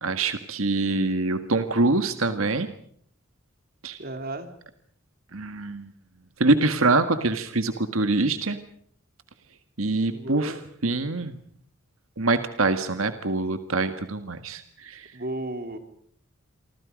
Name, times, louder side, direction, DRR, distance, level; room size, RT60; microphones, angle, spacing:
voice 1, 0.0-2.7 3.8-4.0 5.3-5.9 6.4-8.6 9.8-10.5 10.8-11.3 12.2-15.1, right 3 dB, 85° right, 9 dB, 1.7 m, -24 dB
voice 2, 4.0-4.5 10.1-10.6 15.1-15.8, right 1 dB, 50° right, 7 dB, 3.1 m, -33 dB
28.5 x 25.0 x 5.2 m, 0.62 s
head